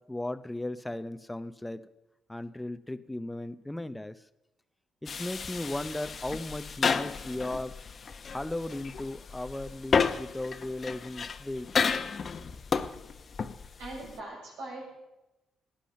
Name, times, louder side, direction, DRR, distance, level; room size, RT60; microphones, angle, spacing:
voice 1, 0.0-1.9 2.3-4.2 5.0-7.7 8.3-11.7, left 1 dB, 10° left, 12 dB, 0.6 m, -36 dB
sound 1, 5.1-14.2, left 5 dB, 45° left, 0.9 m, -32 dB
voice 2, 13.8-14.9, right 2 dB, 90° right, -2 dB, 6.7 m, -41 dB
17.5 x 10.0 x 6.4 m, 0.99 s
cardioid pair, 90°, 0 cm